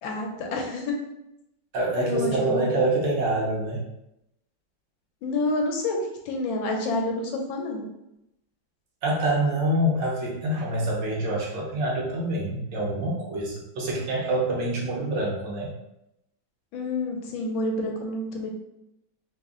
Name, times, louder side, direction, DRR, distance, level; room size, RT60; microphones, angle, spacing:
voice 1, 0.0-0.9 2.0-2.7 5.2-7.9 16.7-18.5, left 2 dB, 80° left, 2 dB, 1.4 m, -28 dB
voice 2, 1.7-3.9 9.0-15.7, right 1 dB, 65° right, -4 dB, 1.5 m, -26 dB
3.9 x 2.1 x 3.5 m, 0.85 s
omnidirectional pair, 2.2 m